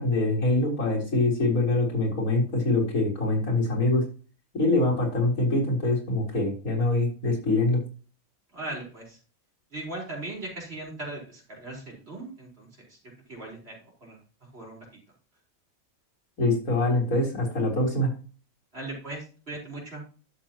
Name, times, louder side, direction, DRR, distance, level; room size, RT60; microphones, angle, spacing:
voice 1, 0.0-4.0 4.5-7.8 16.4-18.1, left 2 dB, 85° left, -2 dB, 4.2 m, -24 dB
voice 2, 8.5-9.2 9.7-13.0 13.3-14.9 18.7-20.0, right 2 dB, 45° right, -2 dB, 4.7 m, -39 dB
11.5 x 7.5 x 2.9 m, 0.37 s
omnidirectional pair, 1.5 m